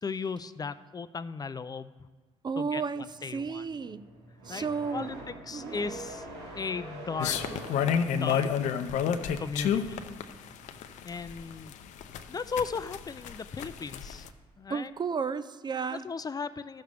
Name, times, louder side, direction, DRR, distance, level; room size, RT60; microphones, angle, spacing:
voice 1, 0.0-2.1 2.6-3.6 4.5-4.7 4.9-5.1 5.4-6.3 6.5-7.4 8.2-8.5 9.4-10.0 11.0-11.7 12.3-14.3 14.6-14.9 15.9-16.8, left 5 dB, 30° left, 14 dB, 0.5 m, -36 dB
voice 2, 2.4-3.0 3.3-4.1 4.4-5.1 5.5-5.9 7.5-7.6 14.7-16.0, right 5 dB, 35° right, 13 dB, 0.5 m, -33 dB
sound 1, 2.8-10.7, right 1 dB, 90° right, 3.1 m, -46 dB
sound 2, 7.2-14.3, left 8 dB, 70° left, 0.7 m, -30 dB
14.0 x 6.6 x 3.4 m, 1.3 s
hypercardioid pair, 60°, 13 cm